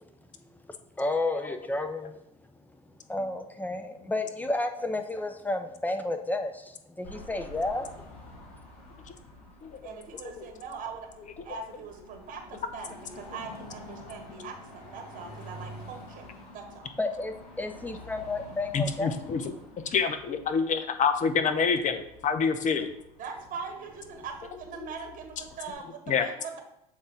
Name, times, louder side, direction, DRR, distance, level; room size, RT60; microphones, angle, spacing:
voice 1, 1.0-2.2 3.1-7.9 17.0-19.1, left 2 dB, 10° left, 7 dB, 0.9 m, -31 dB
Car passing by / Traffic noise roadway noise / Engine, 7.0-25.7, left 1 dB, 90° left, 2.3 m, -49 dB
voice 2, 9.8-11.1 11.4-16.9 23.2-26.6, right 5 dB, 45° right, 4 dB, 1.5 m, -41 dB
voice 3, 18.7-19.5 19.9-22.9 26.1-26.3, left 6 dB, 40° left, 9 dB, 0.9 m, -27 dB
7.2 x 3.9 x 3.9 m, 0.81 s
hypercardioid pair, 75°, 20 cm